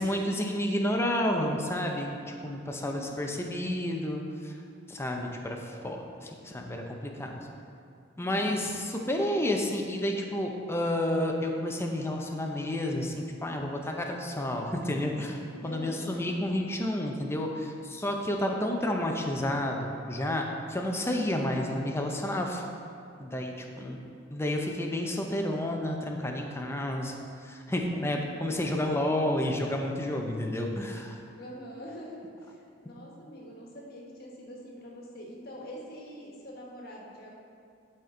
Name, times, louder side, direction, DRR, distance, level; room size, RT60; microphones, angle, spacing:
voice 1, 0.0-4.5 4.9-7.3 8.2-22.6 23.2-24.0 24.3-27.1 27.4-31.2, left 1 dB, 15° left, 2 dB, 0.6 m, -30 dB
voice 2, 2.7-3.2 8.2-8.9 15.5-16.3 23.6-24.2 27.9-29.1 31.3-37.4, equal, 55° left, -3 dB, 1.4 m, -45 dB
11.5 x 4.4 x 3.8 m, 2.4 s
head